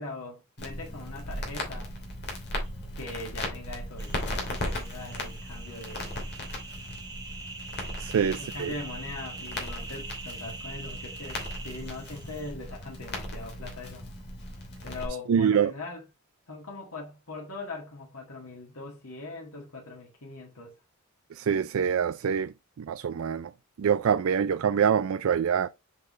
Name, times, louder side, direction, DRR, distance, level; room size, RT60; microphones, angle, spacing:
voice 1, 0.0-1.9 2.9-6.1 8.2-14.1 14.8-16.0 16.5-20.7, left 2 dB, 75° left, 2.1 m, -41 dB
Crackle, 0.6-15.1, left 1 dB, 50° left, 2.8 m, -37 dB
sound 1, 4.0-12.5, right 3 dB, 20° right, 1.8 m, -43 dB
voice 2, 8.0-8.7 15.3-15.7 21.3-23.5 23.8-25.7, right 7 dB, 65° right, 0.4 m, -25 dB
6.8 x 5.6 x 3.2 m
head